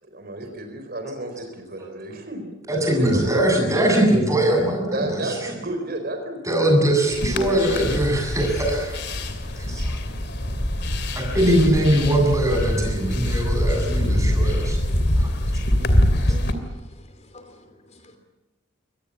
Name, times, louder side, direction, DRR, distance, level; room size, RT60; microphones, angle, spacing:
voice 1, 0.0-3.8 4.9-6.6, right 2 dB, 50° right, 6 dB, 4.5 m, -32 dB
voice 2, 2.7-5.3 6.5-9.1 9.6-10.0 11.2-14.8 15.2-15.3, right 1 dB, 15° right, 2 dB, 7.6 m, -21 dB
sound 1, 7.1-16.5, left 1 dB, 55° left, 2.9 m, -24 dB
voice 3, 14.4-15.2 15.5-15.6 16.1-16.5 17.3-17.6 18.0-18.2, left 1 dB, 35° left, 7 dB, 3.0 m, -46 dB
25.5 x 19.5 x 8.6 m, 1.0 s
head